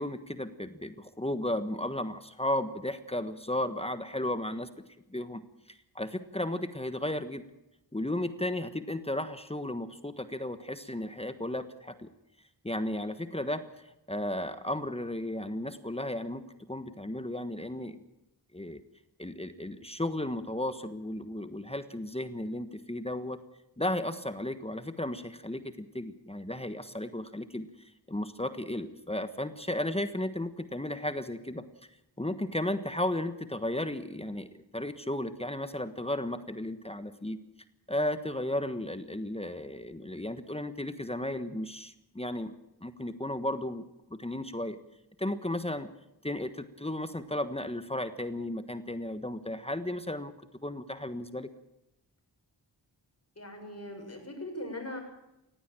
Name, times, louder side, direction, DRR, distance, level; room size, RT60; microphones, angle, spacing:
voice 1, 0.0-4.7 5.1-5.4 5.7-7.4 7.9-12.1 12.6-16.4 16.7-18.0 18.5-18.8 19.2-23.4 23.8-31.6 32.2-37.4 37.9-42.5 42.8-43.8 44.1-44.8 45.2-45.9 46.2-50.3 50.6-51.5, left 1 dB, 15° left, 10 dB, 1.3 m, -34 dB
voice 2, 53.4-55.0, left 1 dB, 35° left, 3 dB, 7.0 m, -40 dB
19.0 x 16.0 x 9.0 m, 0.90 s
wide cardioid pair, 75°, 42 cm